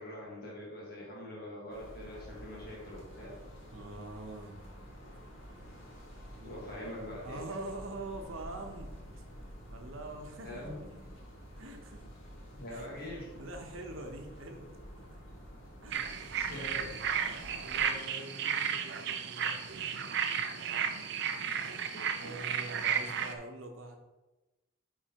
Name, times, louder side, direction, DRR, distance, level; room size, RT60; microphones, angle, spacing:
voice 1, 0.0-3.4 6.4-7.4 10.4-10.8 12.5-13.5 16.3-16.9 21.7-21.8, left 1 dB, 50° left, -5 dB, 1.6 m, -43 dB
sound 1, 1.7-17.9, equal, 75° left, 1.7 m, -50 dB
voice 2, 3.7-4.6 6.3-6.6 7.2-8.9 9.7-11.1 11.5-12.0 12.7-13.1 13.4-15.2 15.8-16.0 17.2-20.2 21.3-21.9 22.2-24.0, right 2 dB, 80° right, 3 dB, 0.9 m, -45 dB
sound 2, 15.9-23.3, right 7 dB, 55° right, 0.5 m, -33 dB
9.1 x 4.1 x 2.9 m, 1.1 s
head